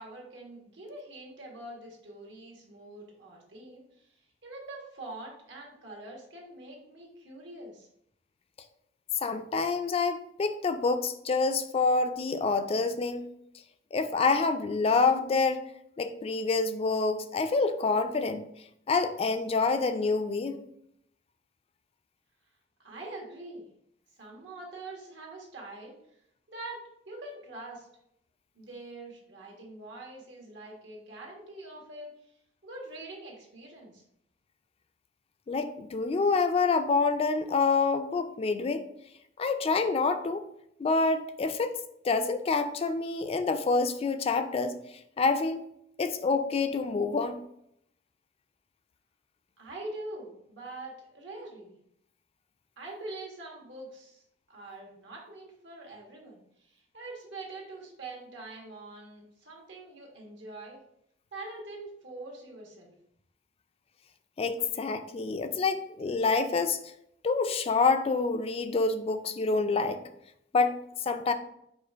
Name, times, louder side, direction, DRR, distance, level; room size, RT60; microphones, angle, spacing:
voice 1, 0.0-7.9 22.8-23.7 24.2-25.9 26.5-26.8 27.1-27.9 28.5-32.3 32.6-34.0 49.6-51.7 52.8-60.8 61.3-62.9, right 2 dB, 75° right, -1 dB, 1.4 m, -44 dB
voice 2, 9.2-13.3 13.9-15.6 16.0-18.5 18.9-20.6 35.5-38.9 39.4-40.4 40.8-41.7 42.0-44.8 45.2-45.6 46.0-47.4 64.4-66.8 67.2-70.0 70.5-70.7 71.0-71.3, left 4 dB, 30° left, 9 dB, 0.3 m, -27 dB
4.9 x 2.4 x 4.5 m, 0.74 s
head